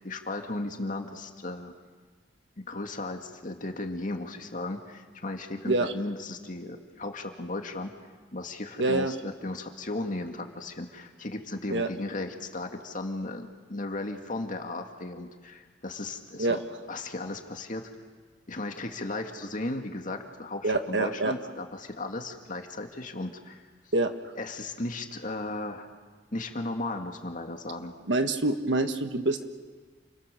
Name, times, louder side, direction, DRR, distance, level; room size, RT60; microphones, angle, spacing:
voice 1, 0.0-1.7 2.6-7.9 8.3-16.6 16.9-17.8 18.5-23.7 24.4-25.9 26.3-27.9, left 2 dB, 45° left, 4 dB, 2.2 m, -35 dB
voice 2, 8.8-9.1 11.7-11.9 16.4-16.6 20.6-21.3 23.9-24.1 28.1-29.5, right 2 dB, 75° right, 7 dB, 1.5 m, -26 dB
29.0 x 23.5 x 7.0 m, 1.5 s
head